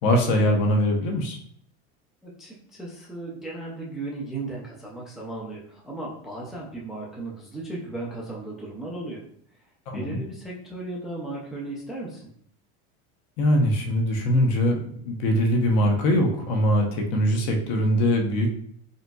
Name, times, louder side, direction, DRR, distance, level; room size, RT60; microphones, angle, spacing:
voice 1, 0.0-1.4 9.9-10.2 13.4-14.8 15.0-18.5, equal, 55° left, 2 dB, 0.9 m, -22 dB
voice 2, 2.2-9.2 9.9-12.3, right 2 dB, ahead, -4 dB, 0.4 m, -36 dB
4.1 x 3.9 x 2.3 m, 0.65 s
cardioid pair, 165°, 32 cm